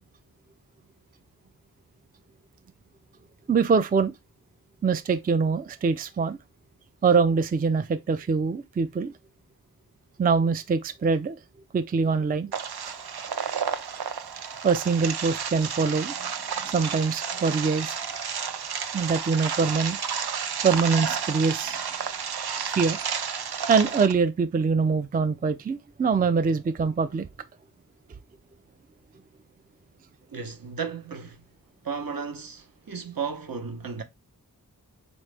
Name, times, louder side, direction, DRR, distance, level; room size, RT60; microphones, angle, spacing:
voice 1, 3.5-4.1 4.8-6.4 7.0-9.1 10.2-11.4 11.7-12.5 12.9-13.0 14.6-16.3 16.6-18.0 18.9-20.0 20.6-21.8 22.7-23.0 23.7-27.3, right 5 dB, 25° right, 0.3 m, -24 dB
sound 1, 12.5-24.1, right 7 dB, 85° right, 0.5 m, -31 dB
voice 2, 30.3-31.4 31.8-34.0, right 5 dB, 65° right, 0.9 m, -34 dB
4.0 x 3.1 x 3.3 m
wide cardioid pair, 45°, 37 cm